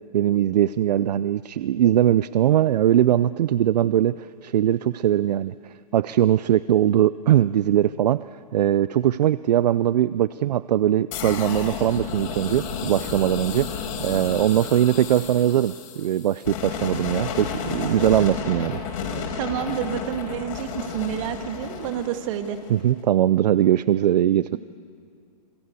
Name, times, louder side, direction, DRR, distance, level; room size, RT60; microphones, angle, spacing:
voice 1, 0.1-8.2 8.5-18.8 22.7-24.6, right 11 dB, 75° right, 16 dB, 0.6 m, -21 dB
sound 1, 11.1-22.9, left 6 dB, 55° left, 4.7 m, -32 dB
voice 2, 19.1-22.6, right 10 dB, 50° right, 7 dB, 2.4 m, -29 dB
27.0 x 24.5 x 8.3 m, 2.3 s
hypercardioid pair, 135°, 21 cm